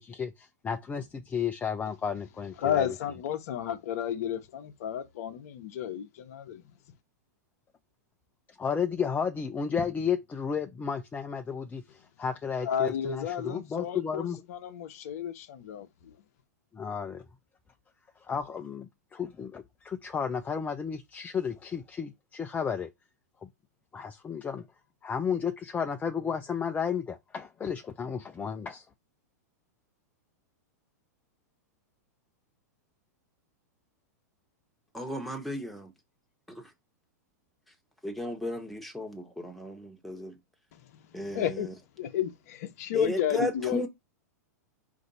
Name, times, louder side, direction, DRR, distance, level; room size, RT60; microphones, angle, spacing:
voice 1, 0.0-3.0 8.6-14.4 16.7-17.2 18.2-22.9 23.4-23.5 23.9-24.7 25.0-28.9, left 6 dB, 15° left, 0.5 m, -33 dB
voice 2, 2.6-6.6 12.6-16.2 40.9-41.7 42.0-43.9, left 9 dB, 60° left, 0.8 m, -32 dB
voice 3, 34.9-35.9 36.5-36.6 38.0-40.4 41.1-41.7 42.9-43.9, left 1 dB, ahead, 1.1 m, -35 dB
5.0 x 2.7 x 4.0 m
hypercardioid pair, 110°, 9 cm